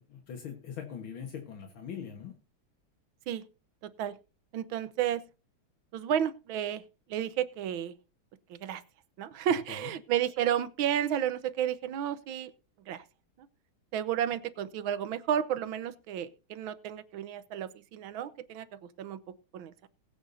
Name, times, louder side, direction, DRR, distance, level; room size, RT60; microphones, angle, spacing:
voice 1, 0.0-2.4 9.7-9.9, left 8 dB, 75° left, 4 dB, 2.2 m, -42 dB
voice 2, 3.8-4.2 4.5-5.2 5.9-6.8 7.1-7.9 8.5-8.8 9.2-12.5 12.9-13.0 13.4-13.5 13.9-19.9, right 10 dB, 80° right, 14 dB, 1.6 m, -32 dB
20.0 x 8.3 x 2.6 m, 0.32 s
omnidirectional pair, 2.3 m